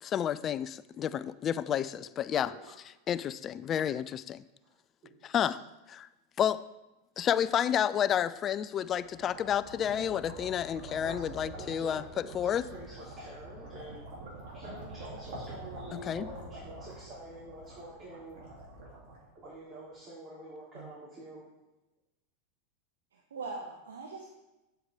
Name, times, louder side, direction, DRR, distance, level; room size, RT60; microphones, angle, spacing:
voice 1, 0.0-2.5 3.1-4.4 5.3-5.6 5.9-6.1 6.4-6.6 7.2-12.0 12.3-12.6 16.1-16.3, left 9 dB, 35° left, 16 dB, 0.4 m, -30 dB
sound 1, 8.6-19.7, right 2 dB, 55° right, 3.0 m, -46 dB
voice 2, 9.8-10.2 11.0-11.1 11.5-14.0 14.5-18.5 19.3-21.4, right 1 dB, 30° right, -9 dB, 3.2 m, -48 dB
voice 3, 23.1-24.3, right 3 dB, 75° right, 2 dB, 0.9 m, -41 dB
8.0 x 7.9 x 3.6 m, 1.0 s
figure-of-eight pair, 90°, 0 cm